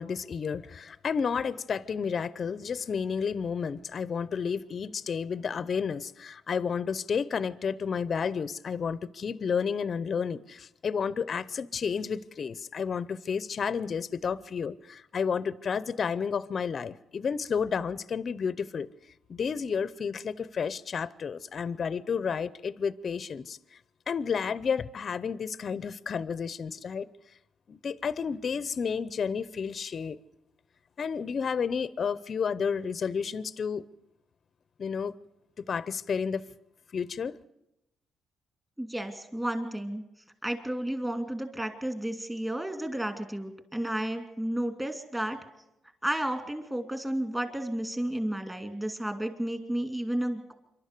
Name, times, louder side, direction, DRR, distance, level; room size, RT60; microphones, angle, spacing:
voice 1, 0.0-18.9 19.3-23.6 24.1-27.1 27.7-30.2 31.0-33.9 34.8-35.1 35.6-36.4 36.9-37.4, left 6 dB, 45° left, 0.7 m, -31 dB
voice 2, 38.8-40.0 40.4-45.4 46.0-50.5, right 1 dB, 10° right, 2.8 m, -32 dB
26.5 x 12.0 x 8.3 m
cardioid pair, 90°, 0 cm